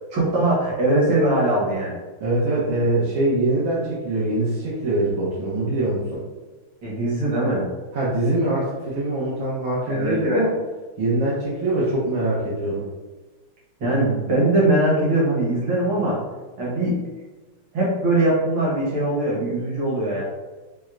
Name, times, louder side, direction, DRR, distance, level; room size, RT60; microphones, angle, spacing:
voice 1, 0.1-1.9 6.8-7.7 9.9-10.4 13.8-16.2 16.6-17.0 17.7-20.2, right 1 dB, 65° right, -5 dB, 2.0 m, -21 dB
voice 2, 2.2-6.2 7.9-10.5 11.0-12.8, right 2 dB, 80° right, -8 dB, 1.7 m, -23 dB
6.2 x 2.1 x 2.4 m, 1.2 s
omnidirectional pair, 2.3 m